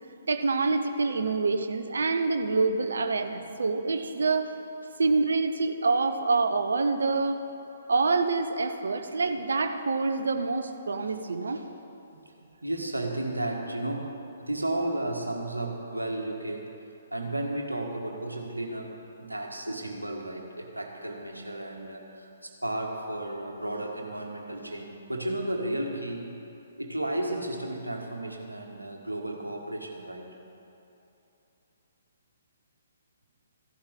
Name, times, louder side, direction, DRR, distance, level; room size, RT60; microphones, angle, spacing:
voice 1, 0.3-4.5 5.0-7.4 7.9-11.6, right 3 dB, 60° right, 8 dB, 0.8 m, -26 dB
voice 2, 11.1-11.7 12.2-12.3 12.6-16.7 17.1-26.3 26.8-30.3, right 1 dB, 80° right, 2 dB, 1.5 m, -33 dB
15.0 x 11.5 x 3.7 m, 2.9 s
figure-of-eight pair, 125°, 0 cm